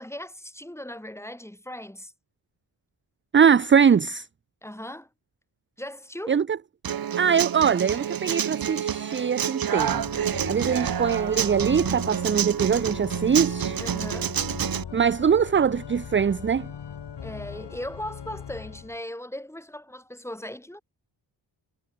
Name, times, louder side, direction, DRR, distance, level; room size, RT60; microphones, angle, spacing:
voice 1, 0.0-2.1 4.6-5.1 5.8-6.4 13.8-14.3 17.2-20.8, left 1 dB, 5° left, 6.5 m, -38 dB
voice 2, 3.3-4.3 6.3-6.4 7.2-10.0 10.5-13.8 14.9-16.7, right 7 dB, 30° right, 0.5 m, -22 dB
Human voice / Acoustic guitar, 6.8-14.8, right 9 dB, 50° right, 1.0 m, -28 dB
Organ, 9.7-19.0, left 7 dB, 65° left, 4.0 m, -39 dB
wide cardioid pair, 115°, 44 cm